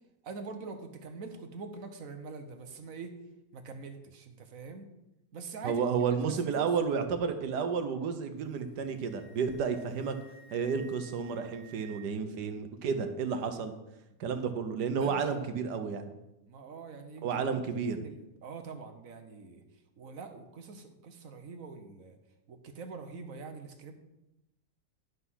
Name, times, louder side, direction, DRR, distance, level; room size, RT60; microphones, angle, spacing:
voice 1, 0.2-3.2 3.5-4.8 5.3-6.1 6.6-6.7 14.9-15.5 16.5-19.6 20.0-22.2 22.5-24.0, right 4 dB, 55° right, 7 dB, 1.4 m, -44 dB
voice 2, 5.6-10.1 10.5-13.7 14.2-16.1 17.2-18.0, right 6 dB, 85° right, 8 dB, 1.6 m, -31 dB
Wind instrument woodwind instrument, 8.4-12.3, right 3 dB, 35° right, 2.3 m, -56 dB
11.0 x 5.7 x 6.2 m, 0.92 s
omnidirectional pair, 1.8 m